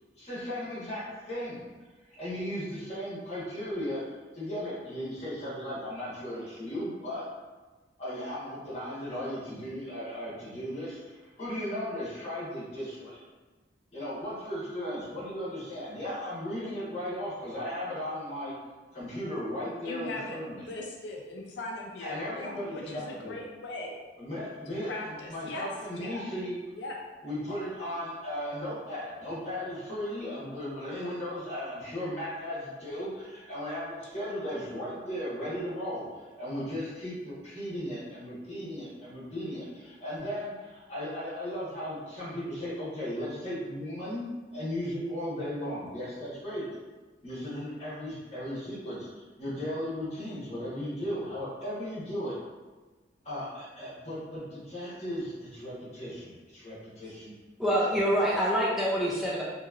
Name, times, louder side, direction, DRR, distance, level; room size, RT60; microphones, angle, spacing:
voice 1, 0.2-1.7 2.2-4.0 4.3-7.2 8.0-13.2 13.9-18.5 18.9-20.7 22.0-23.4 24.2-26.6 27.2-46.6 47.2-49.1 49.4-52.4 53.2-57.3 57.9-58.0, equal, 35° left, -8 dB, 1.1 m, -36 dB
voice 2, 19.8-24.0 24.7-25.7 26.0-26.3 26.7-27.0, left 2 dB, 80° left, 0 dB, 0.4 m, -39 dB
voice 3, 57.6-59.4, equal, ahead, -6 dB, 0.3 m, -26 dB
2.9 x 2.7 x 2.4 m, 1.3 s
head